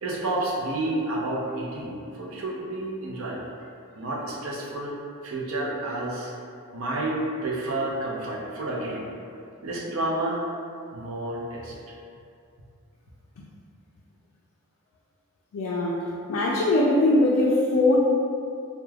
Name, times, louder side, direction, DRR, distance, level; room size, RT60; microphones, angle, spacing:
voice 1, 0.0-3.4 3.9-4.9 5.2-6.3 6.7-9.1 9.6-10.5 10.9-11.7, right 2 dB, 70° right, -3 dB, 0.5 m, -30 dB
voice 2, 15.5-18.0, left 2 dB, 70° left, -4 dB, 0.3 m, -22 dB
3.2 x 2.1 x 2.3 m, 2.4 s
head